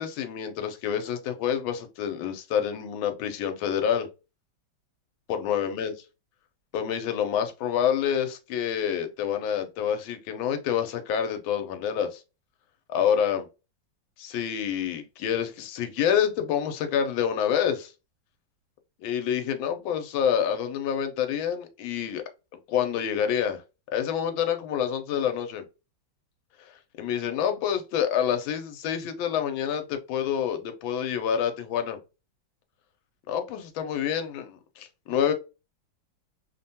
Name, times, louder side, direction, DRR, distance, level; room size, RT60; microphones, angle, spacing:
voice 1, 0.0-4.1 5.3-5.9 6.7-12.2 12.9-13.5 14.2-17.9 19.0-22.2 22.7-23.6 23.9-25.6 26.6-26.7 27.0-32.0 33.3-35.3, left 8 dB, 85° left, 1.4 m, -27 dB
3.3 x 2.1 x 2.6 m
omnidirectional pair, 2.1 m